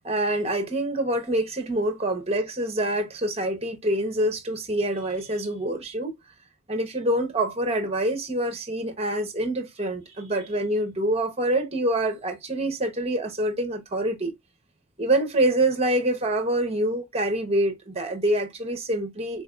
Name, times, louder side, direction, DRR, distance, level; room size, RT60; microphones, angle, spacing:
voice 1, 0.0-6.1 6.7-14.3 15.0-19.4, right 1 dB, 30° right, 0.9 m, -26 dB
4.3 x 2.7 x 2.4 m
head